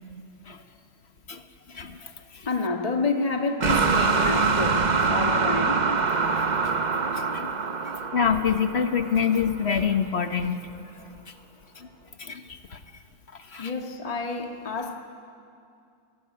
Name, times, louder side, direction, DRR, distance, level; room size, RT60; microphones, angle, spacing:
voice 1, 1.7-2.5 7.1-7.5 8.1-10.7 11.8-11.9 12.2-12.8 13.5-13.7, left 7 dB, 40° left, 8 dB, 1.2 m, -26 dB
voice 2, 2.5-4.8 5.1-5.9 13.6-15.0, left 3 dB, 20° left, 2 dB, 1.9 m, -29 dB
sound 1, 3.6-9.7, right 4 dB, 35° right, 0.7 m, -24 dB
28.5 x 20.0 x 9.8 m, 2.4 s
omnidirectional pair, 2.1 m